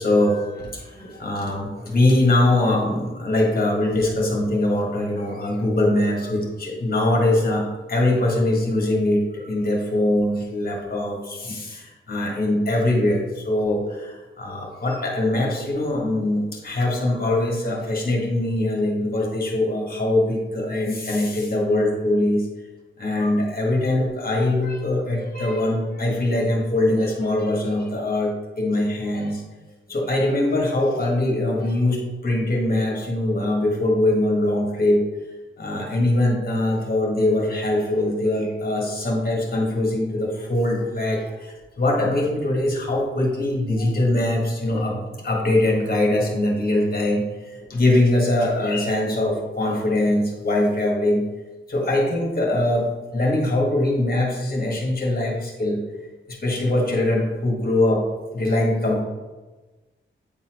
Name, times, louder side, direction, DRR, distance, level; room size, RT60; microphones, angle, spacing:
voice 1, 0.0-22.5 23.0-29.4 29.9-35.0 35.6-47.2 47.7-51.3 51.7-52.9 53.1-55.8 56.3-58.0 58.3-59.0, left 1 dB, 45° left, -1 dB, 1.6 m, -22 dB
8.6 x 4.1 x 3.0 m, 1.2 s
wide cardioid pair, 115°, 21 cm